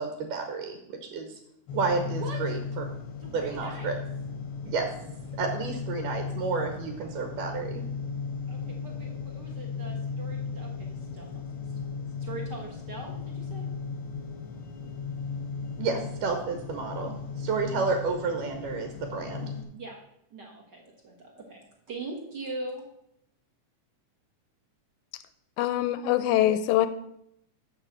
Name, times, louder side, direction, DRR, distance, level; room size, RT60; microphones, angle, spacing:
voice 1, 0.0-1.3 1.7-2.8 3.3-3.9 4.6-4.9 5.4-7.8 15.8-19.5, right 4 dB, 85° right, 5 dB, 2.6 m, -31 dB
sound 1, 1.7-19.6, left 5 dB, 65° left, 1.3 m, -36 dB
voice 2, 2.0-2.4 3.2-3.9 8.5-11.4 12.2-13.7 19.7-20.0 20.3-21.6 21.9-22.8, right 2 dB, 45° right, 0 dB, 1.4 m, -41 dB
voice 3, 25.6-26.9, left 13 dB, 80° left, 12 dB, 1.9 m, -23 dB
6.8 x 6.7 x 7.5 m, 0.78 s
omnidirectional pair, 3.7 m